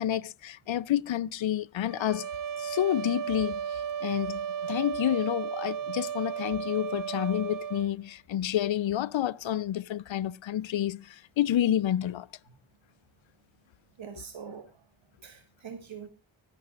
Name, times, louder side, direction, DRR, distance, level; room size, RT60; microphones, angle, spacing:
voice 1, 0.0-2.3 2.6-3.6 4.0-12.3, left 11 dB, 65° left, 0.6 m, -29 dB
sound 1, 1.9-7.9, right 8 dB, 40° right, 0.8 m, -34 dB
voice 2, 14.0-14.8 15.2-16.1, right 6 dB, 65° right, 1.6 m, -44 dB
24.5 x 8.2 x 2.5 m
cardioid pair, 40°, 50 cm